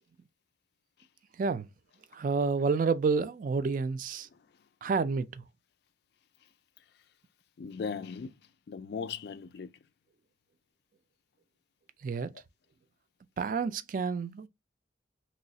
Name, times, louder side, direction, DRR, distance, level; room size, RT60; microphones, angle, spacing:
voice 1, 2.1-4.3 4.8-5.4 12.0-12.3 13.4-14.5, right 4 dB, 45° right, 0.3 m, -29 dB
voice 2, 7.6-8.4 8.7-9.7, left 5 dB, 60° left, 0.4 m, -38 dB
3.1 x 3.0 x 2.7 m
head